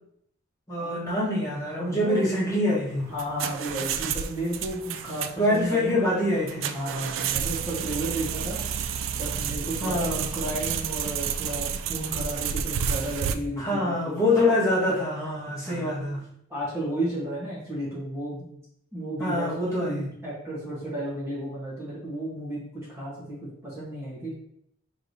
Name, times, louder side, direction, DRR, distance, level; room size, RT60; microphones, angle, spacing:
voice 1, 0.7-3.1 5.4-6.8 9.8-10.3 13.6-16.2 19.2-20.1, left 1 dB, 15° left, -8 dB, 1.3 m, -25 dB
voice 2, 1.8-2.2 3.1-5.9 6.7-8.6 9.2-14.6 15.6-15.9 16.5-18.4 18.9-19.5 19.8-23.4 23.6-24.3, right 1 dB, 15° right, -8 dB, 1.1 m, -33 dB
sound 1, 2.9-13.3, right 8 dB, 75° right, 0.3 m, -31 dB
4.6 x 3.2 x 2.6 m, 0.73 s
head